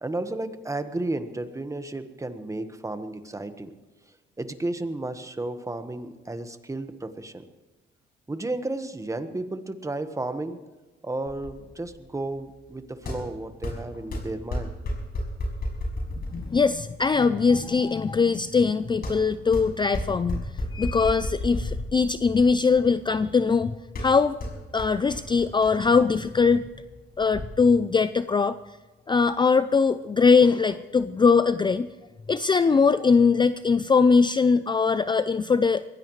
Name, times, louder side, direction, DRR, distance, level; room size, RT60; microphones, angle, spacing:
voice 1, 0.0-3.7 4.4-7.4 8.3-10.6 11.0-14.7, right 2 dB, 15° right, 9 dB, 1.4 m, -33 dB
sound 1, 11.3-27.4, left 1 dB, 50° left, 5.9 m, -35 dB
voice 2, 16.3-20.5 20.7-23.7 24.0-24.4 24.7-26.7 27.2-28.6 29.1-31.9 32.3-35.9, left 5 dB, 25° left, 13 dB, 0.5 m, -21 dB
22.0 x 16.0 x 3.2 m, 1.2 s
cardioid pair, 90°, 20 cm